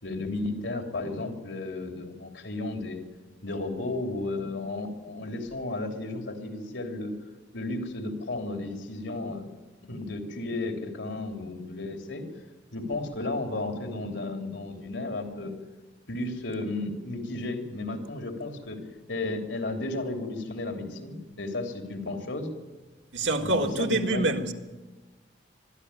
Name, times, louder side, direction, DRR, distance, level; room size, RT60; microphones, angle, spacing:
voice 1, 0.0-3.0 3.4-7.1 7.5-9.5 9.8-12.2 12.7-15.5 16.1-18.8 19.1-22.5 23.4-24.3, left 2 dB, 85° left, 3.3 m, -33 dB
voice 2, 23.1-24.5, right 2 dB, 85° right, 1.9 m, -26 dB
22.5 x 13.0 x 9.7 m
head